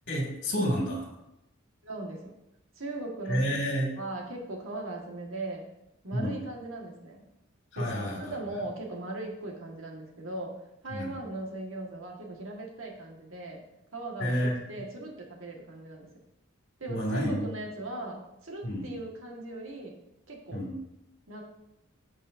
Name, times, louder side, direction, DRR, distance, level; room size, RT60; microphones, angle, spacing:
voice 1, 0.1-1.1 3.2-3.9 6.1-6.4 7.7-8.6 10.9-11.2 14.2-14.7 16.9-17.5 18.6-18.9 20.5-20.7, equal, 60° left, -1 dB, 2.6 m, -30 dB
voice 2, 1.8-2.4 2.8-3.6 4.0-5.6 6.0-7.2 7.8-10.6 10.8-13.6 13.9-14.3 14.7-16.1 16.8-19.9 20.3-20.6 21.3-21.4, right 2 dB, 75° right, 0 dB, 1.9 m, -39 dB
15.5 x 5.3 x 2.7 m, 0.85 s
head